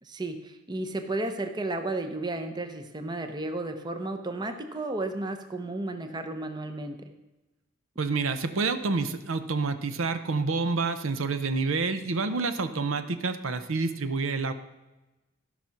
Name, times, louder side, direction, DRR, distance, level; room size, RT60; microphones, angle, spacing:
voice 1, 0.0-7.1, right 2 dB, 20° right, 7 dB, 0.7 m, -33 dB
voice 2, 8.0-14.5, right 4 dB, 65° right, 10 dB, 0.7 m, -28 dB
13.5 x 5.8 x 5.8 m, 1.1 s
head